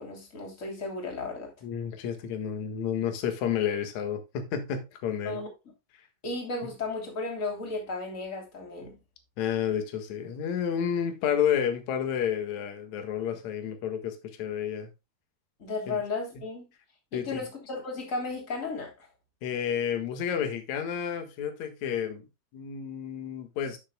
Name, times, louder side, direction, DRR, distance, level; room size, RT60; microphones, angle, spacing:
voice 1, 0.0-1.5 5.2-5.5 6.2-9.0 15.6-16.7 17.1-19.1, left 3 dB, 25° left, 2.9 m, -34 dB
voice 2, 1.6-5.4 9.4-14.9 15.9-16.0 17.1-17.4 19.4-22.2 22.5-23.8, left 8 dB, 60° left, 2.6 m, -30 dB
12.5 x 6.7 x 2.2 m
omnidirectional pair, 4.0 m